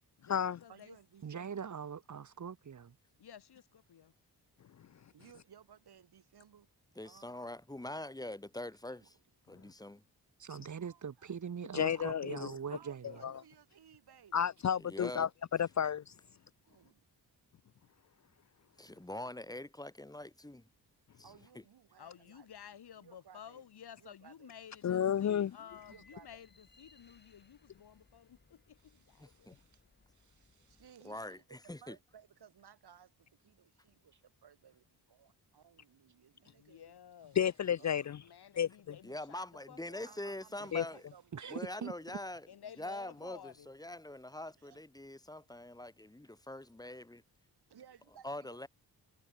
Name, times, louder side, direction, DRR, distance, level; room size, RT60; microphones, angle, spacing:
voice 1, 0.2-1.0 3.2-4.1 22.0-29.5 36.4-37.4 38.2-40.1 40.9-41.0 42.5-43.7, left 9 dB, 75° left, 2.8 m, -54 dB
voice 2, 0.7-1.6 5.1-6.7 7.0-7.4 7.9-8.1 10.7-11.3 12.7-14.4 16.7-17.0 21.2-22.5 23.0-23.7 24.0-24.5 25.9-26.5 30.7-33.1 33.4-36.9 37.4-37.5 37.8-38.0 40.0-41.8 42.1-42.3 44.6-44.8 47.7-48.7, right 8 dB, 75° right, 5.1 m, -60 dB
voice 3, 1.2-2.9 10.4-13.0 41.3-41.9, right 7 dB, 45° right, 1.6 m, -42 dB
voice 4, 7.0-9.2 9.5-10.0 14.8-15.3 18.8-20.7 29.2-29.5 31.0-32.0 39.0-41.0 41.5-42.5 42.8-47.2 48.2-48.7, left 1 dB, 10° left, 2.9 m, -44 dB
voice 5, 11.7-12.5 13.2-13.3 14.3-15.3 15.6-16.0 24.8-25.5 37.4-38.2 38.6-38.7 40.7-40.8, left 8 dB, 45° left, 0.5 m, -31 dB
sound 1, 25.7-30.9, left 3 dB, 25° left, 7.0 m, -66 dB
wide cardioid pair, 155°, 39 cm